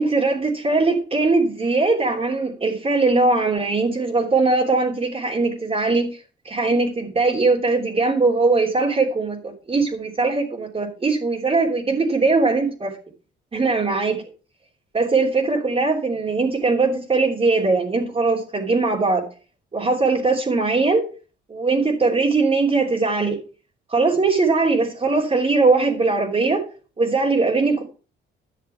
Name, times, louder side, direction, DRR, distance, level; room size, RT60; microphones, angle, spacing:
voice 1, 0.0-6.2 6.4-13.0 13.5-14.2 14.9-19.2 19.7-21.0 21.5-23.4 23.9-26.6 27.0-27.8, right 3 dB, 30° right, -4 dB, 3.3 m, -20 dB
12.0 x 6.6 x 5.8 m, 0.36 s
cardioid pair, 90°, 20 cm